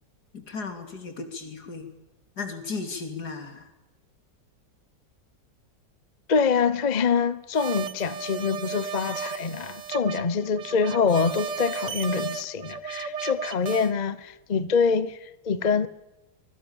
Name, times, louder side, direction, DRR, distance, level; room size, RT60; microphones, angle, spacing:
voice 1, 0.3-1.9 2.4-3.7, left 4 dB, 60° left, 3.5 m, -35 dB
voice 2, 6.3-15.9, left 5 dB, 35° left, 0.7 m, -25 dB
sound 1, 7.5-13.9, right 6 dB, 75° right, 1.8 m, -34 dB
25.0 x 22.5 x 7.2 m
omnidirectional pair, 1.9 m